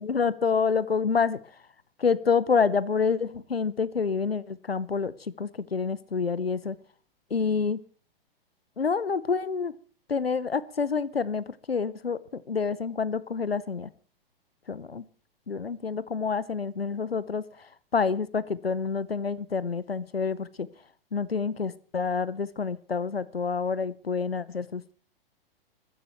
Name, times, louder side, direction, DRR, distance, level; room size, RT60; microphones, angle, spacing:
voice 1, 0.0-1.4 2.0-6.8 7.3-7.8 8.8-9.7 10.1-13.9 14.7-15.0 15.5-17.4 17.9-20.7 21.1-24.9, left 5 dB, 85° left, 18 dB, 0.8 m, -28 dB
22.0 x 14.5 x 3.1 m, 0.41 s
figure-of-eight pair, 105°, 29 cm